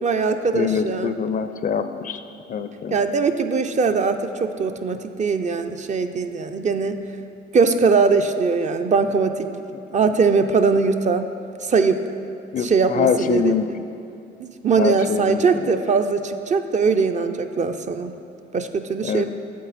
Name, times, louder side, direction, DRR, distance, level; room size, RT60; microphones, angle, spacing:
voice 1, 0.0-1.2 2.9-7.0 7.5-9.5 9.9-11.3 11.6-12.0 12.6-13.5 14.4-18.1 18.5-19.3, right 4 dB, 35° right, 7 dB, 0.4 m, -21 dB
voice 2, 0.5-2.2 2.5-3.0 12.5-13.7 14.8-15.8 19.0-19.3, left 7 dB, 45° left, 10 dB, 0.4 m, -24 dB
8.5 x 7.4 x 4.1 m, 2.6 s
cardioid pair, 90°, 20 cm